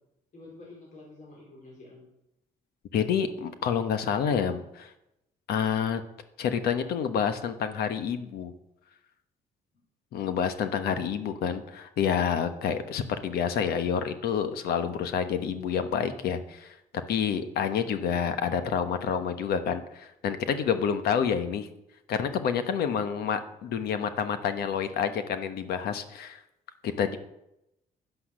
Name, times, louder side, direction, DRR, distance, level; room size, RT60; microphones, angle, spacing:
voice 1, 0.3-2.1 10.9-11.2, left 2 dB, 55° left, -3 dB, 4.4 m, -48 dB
voice 2, 2.9-4.9 5.5-6.0 6.4-8.5 10.1-16.7 17.1-21.7 22.1-26.4 26.8-27.2, left 7 dB, 80° left, 9 dB, 1.2 m, -28 dB
10.5 x 10.0 x 6.5 m, 0.86 s
cardioid pair, 90°, 16 cm